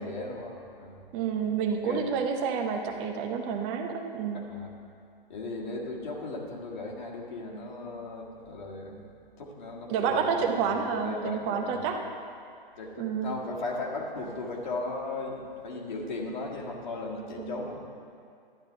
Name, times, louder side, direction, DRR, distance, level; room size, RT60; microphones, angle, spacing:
voice 1, 0.0-1.0 1.9-2.1 4.3-4.7 5.3-9.1 9.4-11.8 12.8-17.8, left 2 dB, 50° left, -2 dB, 1.8 m, -37 dB
voice 2, 1.1-4.4 9.9-12.0 13.0-13.3 17.4-17.6, right 6 dB, 20° right, 4 dB, 0.7 m, -29 dB
12.0 x 10.5 x 3.9 m, 2.4 s
figure-of-eight pair, 120°, 30 cm